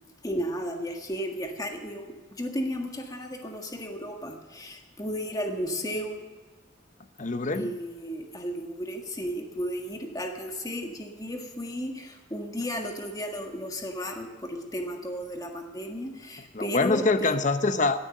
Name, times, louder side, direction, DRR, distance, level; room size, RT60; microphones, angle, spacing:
voice 1, 0.2-6.3 7.5-17.4, equal, 20° left, 3 dB, 1.6 m, -34 dB
voice 2, 7.2-7.7 16.5-18.0, left 3 dB, 40° left, 10 dB, 0.8 m, -24 dB
16.5 x 9.3 x 6.6 m, 1.3 s
head